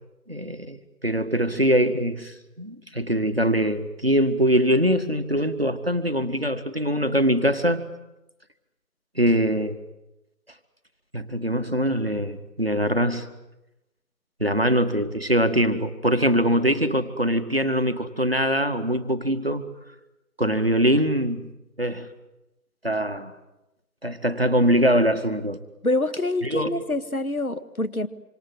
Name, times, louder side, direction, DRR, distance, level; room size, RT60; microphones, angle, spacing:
voice 1, 0.3-7.8 9.2-9.8 11.1-13.3 14.4-19.6 20.4-21.5 21.8-22.1 22.8-23.3 24.0-25.6 26.4-26.7, equal, 35° right, 8 dB, 1.8 m, -23 dB
voice 2, 25.8-28.1, left 2 dB, 60° left, 11 dB, 1.9 m, -26 dB
27.0 x 26.5 x 7.9 m, 0.93 s
figure-of-eight pair, 180°, 48 cm